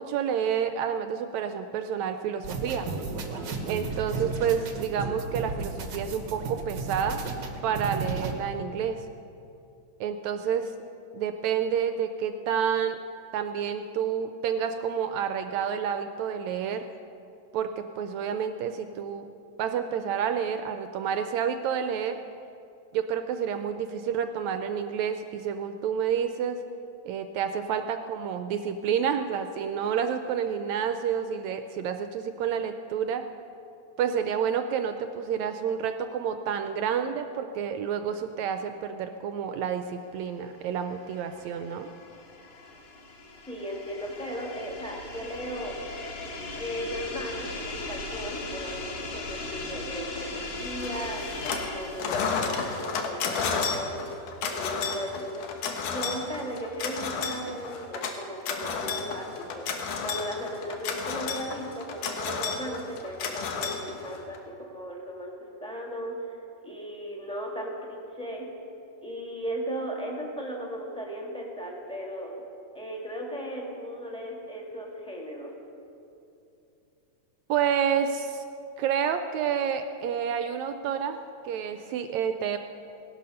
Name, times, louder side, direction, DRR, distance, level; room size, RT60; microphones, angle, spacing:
voice 1, 0.0-2.9 3.7-7.2 7.6-9.0 10.0-10.7 11.1-13.0 13.3-16.8 17.5-19.3 19.6-22.2 22.9-26.6 27.0-33.2 34.0-41.9 77.5-78.4 78.8-81.2 81.4-82.6, right 8 dB, 80° right, 8 dB, 1.8 m, -29 dB
sound 1, 2.4-8.3, right 4 dB, 55° right, 1.2 m, -34 dB
sound 2, 40.4-52.3, left 2 dB, 60° left, 2.8 m, -38 dB
voice 2, 43.5-45.8 46.5-65.3 65.6-66.4 66.6-68.5 69.0-72.3 72.7-75.5, equal, ahead, -2 dB, 1.5 m, -36 dB
sound 3, 50.8-51.7 52.0-64.4, left 5 dB, 90° left, 2.7 m, -32 dB
18.0 x 11.5 x 5.6 m, 2.7 s
omnidirectional pair, 3.5 m